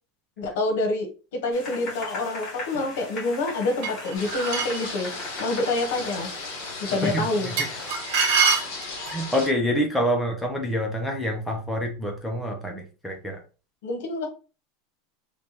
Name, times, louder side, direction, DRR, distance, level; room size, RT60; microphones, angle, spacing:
voice 1, 0.4-5.1 5.4-6.3 6.8-7.6 13.8-14.3, left 2 dB, 70° left, 4 dB, 1.1 m, -27 dB
sound 1, 1.5-7.9, left 2 dB, 30° left, 2.0 m, -39 dB
sound 2, 3.8-4.9 7.6-9.2, right 5 dB, 60° right, 1.8 m, -24 dB
sound 3, 4.1-9.5, left 3 dB, 45° left, 1.6 m, -36 dB
voice 2, 7.0-7.5 8.4-8.7 9.1-13.4, equal, 5° left, 0 dB, 0.8 m, -27 dB
3.4 x 3.2 x 2.9 m, 0.34 s
supercardioid pair, 150°, 0 cm